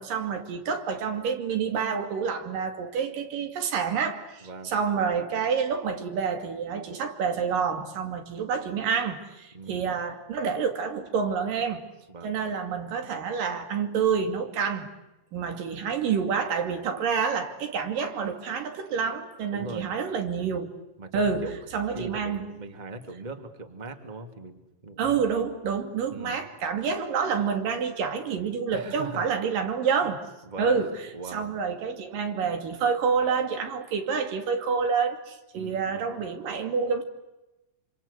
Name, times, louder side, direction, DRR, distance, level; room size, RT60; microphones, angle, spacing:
voice 1, 0.0-11.8 12.2-14.9 15.3-20.7 21.1-22.4 25.0-30.2 30.6-37.0, right 6 dB, 85° right, 6 dB, 4.2 m, -28 dB
voice 2, 4.4-4.7 9.5-9.9 12.1-12.4 19.5-19.9 21.0-21.6 21.9-25.2 26.1-26.4 28.7-29.3 30.0-30.1 30.5-30.8 31.1-31.5 35.5-36.1, right 3 dB, 15° right, 6 dB, 2.2 m, -40 dB
27.0 x 26.5 x 8.3 m, 0.97 s
omnidirectional pair, 3.8 m